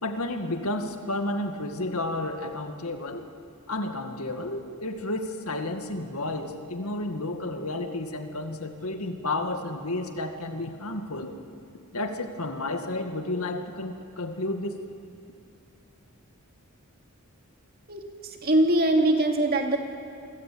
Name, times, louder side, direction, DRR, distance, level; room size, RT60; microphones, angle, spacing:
voice 1, 0.0-3.3 3.7-11.3 11.9-14.8, left 2 dB, 75° left, 6 dB, 2.1 m, -31 dB
voice 2, 18.4-19.8, right 1 dB, 45° right, 3 dB, 2.8 m, -21 dB
28.5 x 23.0 x 8.7 m, 2.4 s
head